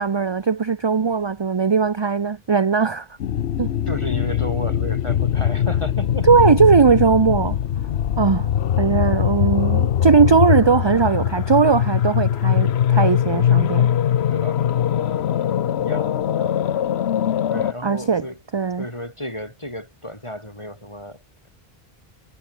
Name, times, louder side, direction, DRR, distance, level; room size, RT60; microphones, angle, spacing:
voice 1, 0.0-3.1 3.6-3.7 6.3-7.6 8.2-8.5 8.8-13.9 17.8-18.2 18.5-18.8, right 5 dB, 35° right, 0.5 m, -18 dB
sound 1, 3.2-17.7, left 10 dB, 90° left, 1.0 m, -21 dB
voice 2, 3.9-6.3 14.3-14.6 15.8-16.6 17.5-18.4 18.8-21.5, left 1 dB, 30° left, 7.3 m, -33 dB
omnidirectional pair, 1.0 m